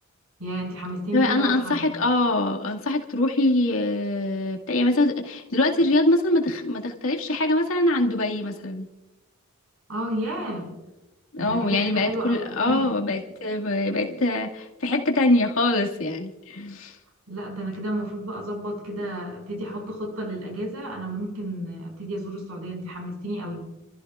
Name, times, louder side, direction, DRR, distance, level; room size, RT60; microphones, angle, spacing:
voice 1, 0.4-1.9 9.9-10.7 11.4-13.2 17.3-23.6, right 1 dB, 85° right, 1 dB, 5.6 m, -32 dB
voice 2, 1.1-8.9 11.3-17.0, left 2 dB, 70° left, 0 dB, 2.1 m, -23 dB
30.0 x 14.0 x 2.4 m, 1.0 s
head